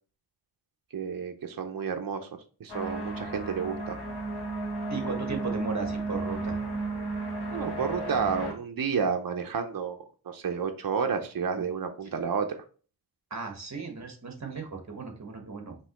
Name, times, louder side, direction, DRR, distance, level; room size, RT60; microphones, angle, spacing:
voice 1, 0.9-2.3 2.6-4.0 7.5-12.6, right 6 dB, 65° right, 5 dB, 0.6 m, -31 dB
sound 1, 2.7-8.5, right 2 dB, 85° left, 2.0 m, -33 dB
voice 2, 4.9-6.6 12.0-12.1 13.3-15.8, right 4 dB, 45° right, 3 dB, 1.3 m, -36 dB
5.3 x 3.0 x 3.0 m, 0.39 s
wide cardioid pair, 75°, 38 cm